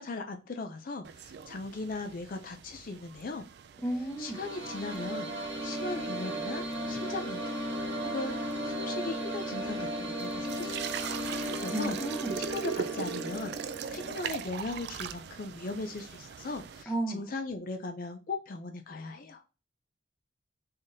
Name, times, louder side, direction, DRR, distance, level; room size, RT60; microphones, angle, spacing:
voice 1, 0.0-3.4 4.2-5.3 5.6-7.6 8.0-8.4 8.6-12.0 12.4-19.4, left 3 dB, 45° left, 0.4 m, -38 dB
sound 1, 1.0-16.8, right 7 dB, 55° right, 0.3 m, -42 dB
voice 2, 3.8-4.4 11.7-12.4 16.9-17.2, right 1 dB, 5° left, 0.6 m, -33 dB
sound 2, 3.9-14.2, right 1 dB, 75° right, 1.0 m, -36 dB
3.7 x 3.5 x 2.6 m
head